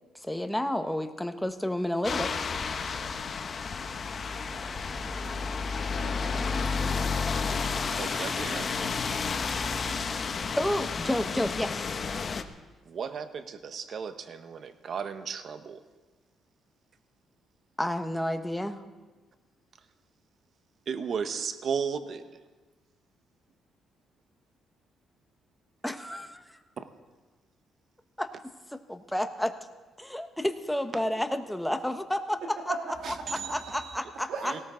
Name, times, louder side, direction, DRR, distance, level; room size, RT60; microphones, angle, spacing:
voice 1, 0.1-2.4 10.6-12.0 17.8-18.8 25.8-26.6 28.2-28.3 28.7-29.6 30.0-32.7 33.5-34.5, left 1 dB, 5° left, 8 dB, 1.1 m, -30 dB
sound 1, 2.0-12.4, left 5 dB, 45° left, 1.0 m, -31 dB
voice 2, 6.0-7.0 32.6-33.6 34.3-34.6, right 4 dB, 85° right, 0 dB, 2.7 m, -39 dB
voice 3, 7.9-9.2 9.9-10.0 12.8-15.8 20.9-22.4 26.8-26.9 33.0-34.0 34.4-34.6, right 6 dB, 55° right, 10 dB, 1.0 m, -35 dB
18.5 x 17.5 x 3.9 m, 1.2 s
cardioid pair, 90°, 0 cm